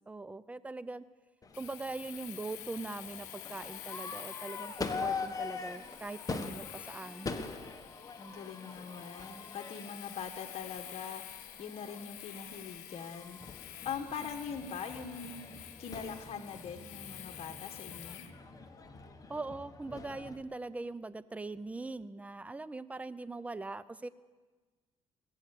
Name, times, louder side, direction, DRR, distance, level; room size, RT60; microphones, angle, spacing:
voice 1, 0.1-1.0 1.6-7.5 19.3-24.1, right 3 dB, 10° right, 17 dB, 0.5 m, -41 dB
Crowd / Fireworks, 1.4-20.4, left 4 dB, 25° left, 1.4 m, -44 dB
Domestic sounds home sounds, 1.5-18.3, left 13 dB, 85° left, 1.0 m, -49 dB
voice 2, 8.2-13.6 13.8-18.2, left 6 dB, 50° left, 4 dB, 1.4 m, -42 dB
19.5 x 8.0 x 8.4 m, 1.4 s
supercardioid pair, 80°, 13 cm